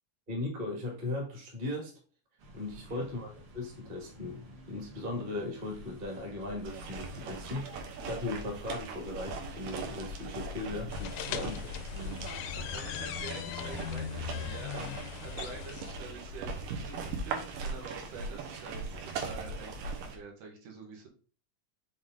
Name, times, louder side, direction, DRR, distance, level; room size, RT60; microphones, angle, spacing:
voice 1, 0.3-1.9 2.5-11.6, left 2 dB, 20° right, 0 dB, 1.3 m, -38 dB
sound 1, 2.4-19.9, left 3 dB, 50° right, 1.8 m, -49 dB
voice 2, 2.8-3.1 11.1-21.1, right 4 dB, 70° right, 1 dB, 2.8 m, -47 dB
sound 2, 6.6-20.2, right 4 dB, 90° right, 2.7 m, -40 dB
sound 3, 10.9-15.9, left 10 dB, 80° left, 1.7 m, -39 dB
6.9 x 4.0 x 3.8 m, 0.38 s
omnidirectional pair, 3.8 m